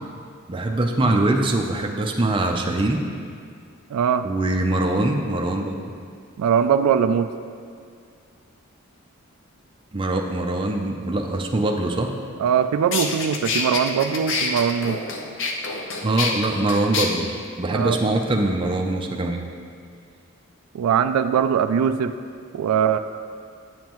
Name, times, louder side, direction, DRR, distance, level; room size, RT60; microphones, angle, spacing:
voice 1, 0.5-3.0 4.2-5.9 9.9-12.1 16.0-17.3 17.6-19.4, right 2 dB, 20° right, 1 dB, 0.5 m, -23 dB
voice 2, 3.9-4.2 6.4-7.3 12.4-15.0 17.7-18.0 20.7-22.1 22.5-23.0, right 7 dB, 90° right, 11 dB, 0.3 m, -21 dB
sound 1, 12.5-12.6 12.9-17.1, left 4 dB, 55° left, 0.7 m, -26 dB
9.3 x 7.3 x 3.0 m, 2.2 s
head